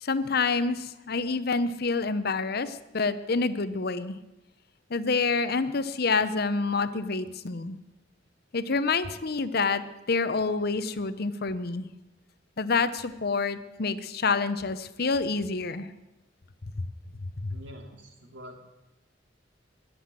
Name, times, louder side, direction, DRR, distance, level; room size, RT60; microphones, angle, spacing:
voice 1, 0.0-4.2 4.9-7.8 8.5-11.9 12.6-15.9 17.2-17.6, left 4 dB, 55° left, 13 dB, 0.8 m, -27 dB
voice 2, 17.5-18.7, equal, 80° right, 3 dB, 2.8 m, -46 dB
20.5 x 7.9 x 7.7 m, 0.99 s
head